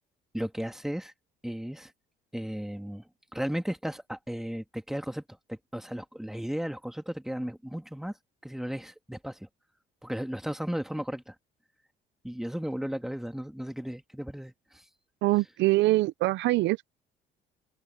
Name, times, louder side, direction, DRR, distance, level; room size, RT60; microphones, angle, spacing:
voice 1, 0.3-1.1 1.4-1.9 2.3-3.0 3.3-5.2 5.5-8.1 8.4-9.5 10.0-11.3 12.2-14.8, equal, ahead, 2.0 m, -35 dB
voice 2, 15.2-16.9, right 19 dB, 75° right, 0.6 m, -24 dB
open air
supercardioid pair, 85°, 19 cm